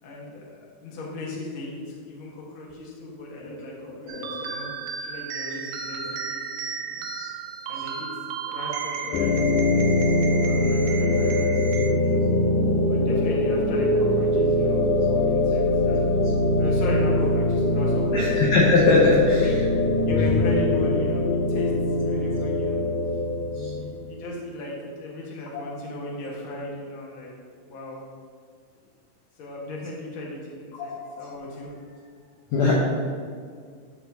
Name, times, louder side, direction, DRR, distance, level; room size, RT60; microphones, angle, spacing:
voice 1, 0.0-4.7 5.0-7.1 7.7-8.1 8.4-12.2 12.8-14.8 15.1-16.2 16.5-18.4 19.3-19.6 20.0-22.8 23.7-27.3 27.6-28.0 29.4-32.1, left 2 dB, 50° left, -3 dB, 1.7 m, -36 dB
sound 1, 4.1-11.9, right 6 dB, 90° right, 2.3 m, -34 dB
sound 2, 9.1-24.1, left 1 dB, 85° left, 2.3 m, -22 dB
voice 2, 18.1-19.5 23.5-23.9 30.8-31.3 32.5-32.7, left 3 dB, 70° left, -3 dB, 1.8 m, -21 dB
13.0 x 5.0 x 2.7 m, 2.1 s
omnidirectional pair, 3.8 m